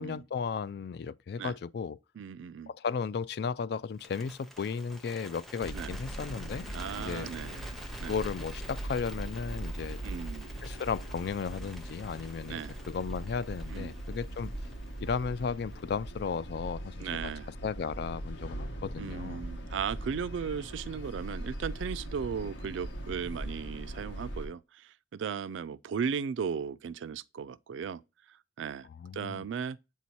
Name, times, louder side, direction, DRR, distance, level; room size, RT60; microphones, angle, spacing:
voice 1, 0.0-2.0 2.7-6.7 7.0-7.3 8.1-10.0 10.6-12.6 12.9-14.5 15.0-17.1 17.6-19.4 29.0-29.4, left 6 dB, 60° left, 0.3 m, -35 dB
voice 2, 2.2-2.7 5.7-5.9 6.7-7.7 8.0-8.1 10.0-10.5 12.5-12.8 13.7-13.9 17.0-17.5 19.0-28.0 28.3-28.9 29.1-29.8, right 6 dB, 85° right, 0.3 m, -36 dB
Bird, 3.9-16.1, equal, ahead, 0.6 m, -49 dB
sound 1, 5.6-24.5, right 1 dB, 75° left, 1.1 m, -40 dB
8.3 x 2.8 x 4.4 m
head